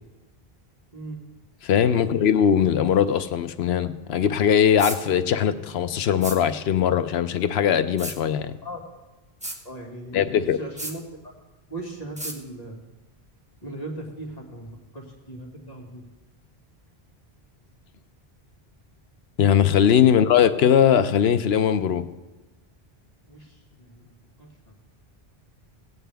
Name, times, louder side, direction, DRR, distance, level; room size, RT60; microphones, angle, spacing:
voice 1, 1.6-8.6 10.1-10.6 19.4-22.0, left 8 dB, 80° left, 11 dB, 0.9 m, -20 dB
sound 1, 4.8-5.0 6.2-6.4 8.0-8.2 9.4-9.6 10.8-11.0 12.2-12.4, right 1 dB, 5° right, 1.1 m, -32 dB
voice 2, 9.6-11.3 11.7-12.8 13.6-16.0 23.3-24.1 24.4-24.7, right 2 dB, 40° left, -2 dB, 2.2 m, -38 dB
16.5 x 9.5 x 3.4 m, 1.1 s
omnidirectional pair, 1.1 m